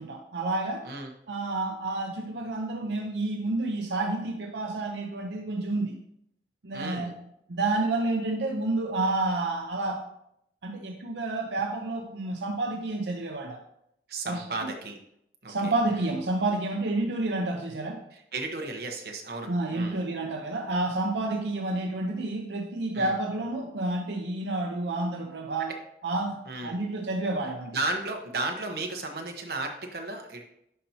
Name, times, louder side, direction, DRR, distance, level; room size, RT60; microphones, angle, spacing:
voice 1, 0.0-0.9 1.3-6.0 6.6-7.1 7.5-10.0 10.6-13.6 14.3-14.7 15.5-18.0 19.5-25.7 26.0-27.8, right 2 dB, 85° right, 2 dB, 0.7 m, -29 dB
voice 2, 6.7-7.1 14.1-15.0 15.4-16.0 18.1-20.0 22.9-23.2 25.6-25.7 26.5-26.8 27.7-30.4, right 2 dB, 60° right, 3 dB, 1.0 m, -34 dB
11.0 x 4.4 x 2.8 m, 0.76 s
head